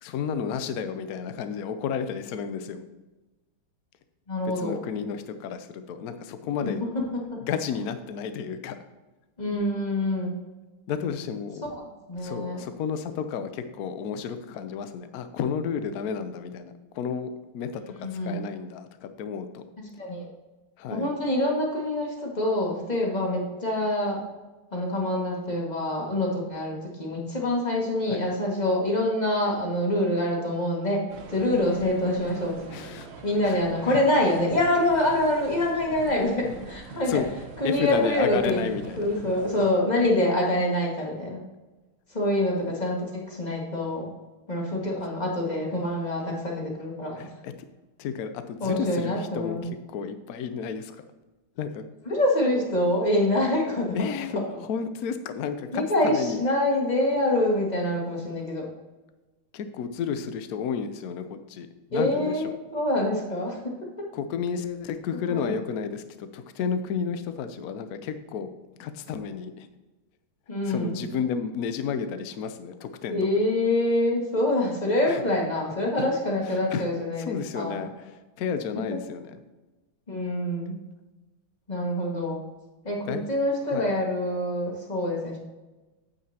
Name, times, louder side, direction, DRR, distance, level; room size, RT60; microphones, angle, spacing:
voice 1, 0.0-2.8 4.6-6.8 7.5-8.8 10.9-11.7 12.2-17.8 18.1-19.6 20.8-21.1 28.1-28.2 32.7-33.1 33.4-33.6 33.9-34.0 37.1-37.3 37.6-39.2 47.2-47.5 48.0-49.6 49.9-51.0 51.6-51.8 53.9-54.4 54.7-56.4 59.5-62.5 64.1-68.5 68.8-69.7 70.7-73.3 75.1-75.2 76.7-76.9 77.2-78.1 78.4-79.4 83.1-83.3 83.7-83.9, left 7 dB, 65° left, 9 dB, 0.9 m, -32 dB
voice 2, 4.3-4.8 6.6-7.4 9.4-10.4 11.7-11.8 12.1-12.6 18.0-18.4 20.0-20.3 20.9-24.2 24.7-32.6 33.2-37.2 37.6-38.7 39.0-41.4 42.1-44.1 44.5-47.3 48.6-49.7 52.1-54.0 55.7-58.7 61.9-63.8 65.3-65.6 70.5-71.1 73.1-77.9 80.1-80.8 81.7-82.4 82.8-85.4, left 1 dB, 20° left, -2 dB, 1.9 m, -26 dB
sound 1, 31.1-39.7, right 5 dB, 85° right, 0.5 m, -43 dB
9.0 x 8.5 x 2.9 m, 1.1 s
omnidirectional pair, 2.3 m